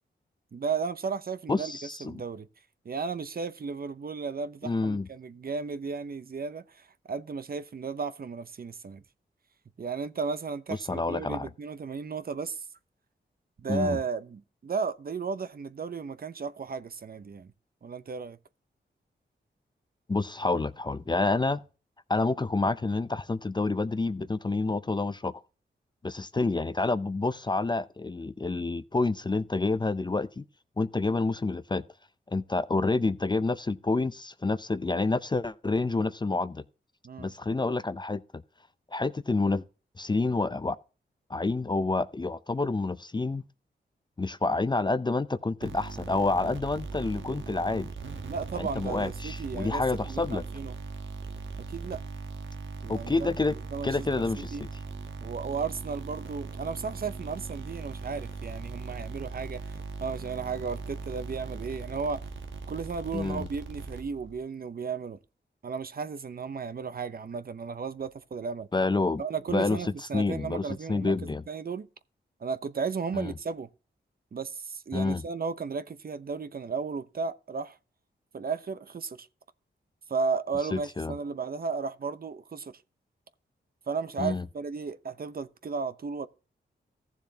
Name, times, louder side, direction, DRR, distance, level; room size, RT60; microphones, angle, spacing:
voice 1, 0.5-1.7 2.0-2.5 2.8-9.0 9.8-12.7 13.6-17.5 17.8-18.4 37.0-37.3 48.2-50.7 51.7-52.0 52.8-53.3 53.7-54.1 54.5-54.6 55.2-62.3 62.7-65.2 65.6-68.7 69.2-71.9 72.4-73.7 74.3-77.8 78.3-79.3 80.1-82.8 83.9-86.3, right 5 dB, 50° right, 0.7 m, -34 dB
voice 2, 1.5-2.2 4.6-5.1 10.9-11.5 13.7-14.0 20.1-21.6 22.1-25.4 26.0-30.4 30.8-31.8 32.3-36.6 37.2-38.4 38.9-39.6 40.0-40.8 41.3-43.4 44.2-47.9 48.6-50.4 52.9-53.5 53.8-54.7 63.1-63.5 68.7-69.2 69.5-69.8 70.1-71.4 73.1-73.3 74.9-75.2 80.7-81.1 84.2-84.4, left 3 dB, 25° left, 0.5 m, -28 dB
sound 1, 45.6-64.4, right 4 dB, 80° right, 1.2 m, -39 dB
14.5 x 7.1 x 2.8 m
cardioid pair, 55°, 20 cm